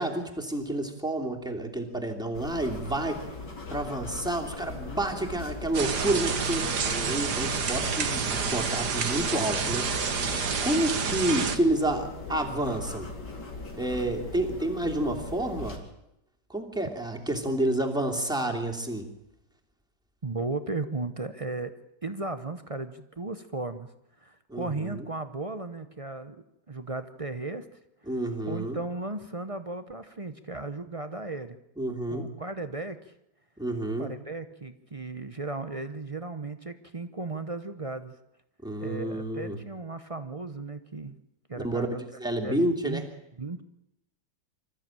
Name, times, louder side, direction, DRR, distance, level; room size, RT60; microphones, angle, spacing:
voice 1, 0.0-3.2 3.7-10.3 10.6-13.1 13.8-15.8 16.5-19.1 24.5-25.1 28.1-28.8 31.8-32.3 33.6-34.1 38.6-39.6 41.6-41.9 42.2-43.0, right 1 dB, ahead, 1 dB, 2.6 m, -29 dB
sound 1, 2.3-15.8, left 3 dB, 80° left, 3.8 m, -40 dB
sound 2, 5.7-11.6, right 5 dB, 70° right, 2.1 m, -29 dB
voice 2, 20.2-21.7 22.0-26.4 26.7-27.7 28.5-31.6 32.1-33.1 34.0-38.2 38.8-41.1 41.5-42.0 42.4-43.1 43.4-43.6, right 3 dB, 30° right, 10 dB, 0.6 m, -35 dB
26.5 x 14.0 x 8.9 m, 0.87 s
omnidirectional pair, 1.8 m